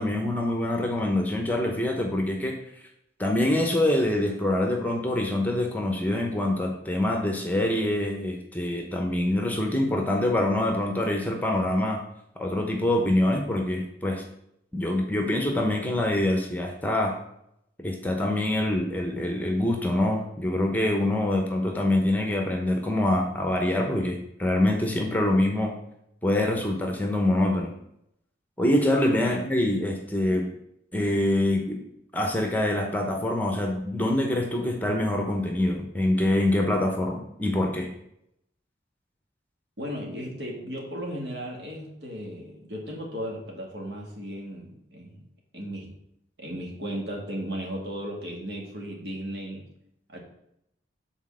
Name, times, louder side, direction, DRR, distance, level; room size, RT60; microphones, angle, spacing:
voice 1, 0.0-2.5 3.2-12.0 12.4-14.2 14.7-17.2 17.8-25.8 26.2-27.7 28.6-30.5 30.9-31.8 32.1-37.9, left 1 dB, 10° left, 2 dB, 0.8 m, -25 dB
voice 2, 35.1-35.6 39.8-45.2 45.5-45.9 46.4-49.6 50.1-50.2, equal, 65° right, -1 dB, 1.9 m, -36 dB
6.4 x 4.1 x 6.2 m, 0.77 s
head